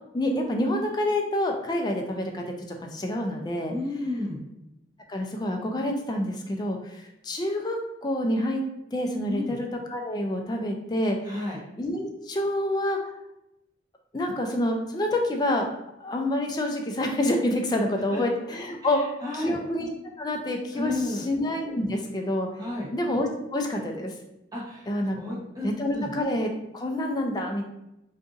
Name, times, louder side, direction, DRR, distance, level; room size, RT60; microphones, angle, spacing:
voice 1, 0.1-3.7 5.1-8.6 8.9-11.5 11.8-13.0 14.1-15.7 16.0-19.0 19.3-19.9 20.2-22.5 22.9-24.1 24.9-25.2 25.6-27.6, left 1 dB, 20° left, 2 dB, 0.3 m, -27 dB
voice 2, 3.7-4.4 9.2-9.5 11.3-11.6 18.1-18.2 18.8-19.6 20.7-21.2 22.6-22.9 24.5-24.9 25.2-26.1, left 2 dB, 20° right, -4 dB, 0.8 m, -32 dB
2.6 x 2.4 x 3.7 m, 0.88 s
head